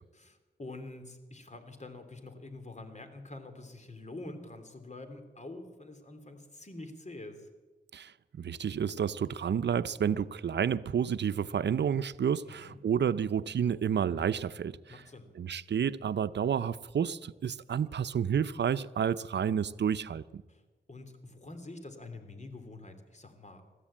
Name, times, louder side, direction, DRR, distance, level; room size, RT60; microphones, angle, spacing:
voice 1, 0.1-7.5 12.4-12.8 14.9-15.3 20.5-20.6 20.9-23.7, left 2 dB, 40° left, 3.2 m, -46 dB
voice 2, 7.9-15.0 15.4-20.4, right 8 dB, 75° right, 0.7 m, -30 dB
21.0 x 14.0 x 8.7 m
cardioid pair, 60°, 18 cm